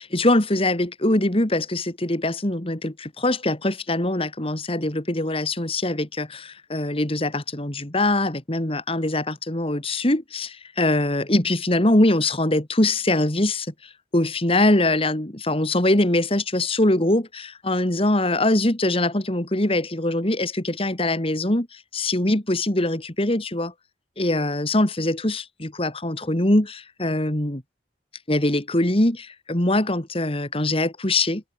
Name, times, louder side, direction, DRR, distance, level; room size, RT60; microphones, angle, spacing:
voice 1, 0.1-1.8 2.1-2.9 3.2-6.2 6.7-10.5 10.8-13.5 14.1-17.2 17.7-20.5 20.8-21.6 22.0-23.7 24.2-25.4 25.8-26.6 27.0-27.6 28.3-29.1 29.5-31.4, left 1 dB, 30° left, 2.4 m, -22 dB
head